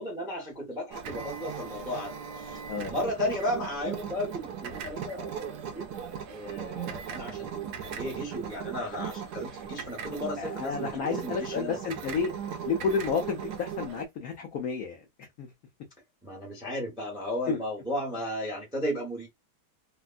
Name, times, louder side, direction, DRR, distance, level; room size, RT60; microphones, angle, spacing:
voice 1, 0.0-2.6 2.9-5.8 6.3-11.8 16.2-19.3, left 1 dB, 5° right, 0.4 m, -34 dB
sound 1, 0.9-14.0, right 7 dB, 75° right, 0.9 m, -38 dB
voice 2, 10.4-12.3 12.7-15.0 15.4-15.5 17.5-17.6, left 5 dB, 80° left, 0.8 m, -30 dB
3.3 x 2.1 x 2.4 m
omnidirectional pair, 2.2 m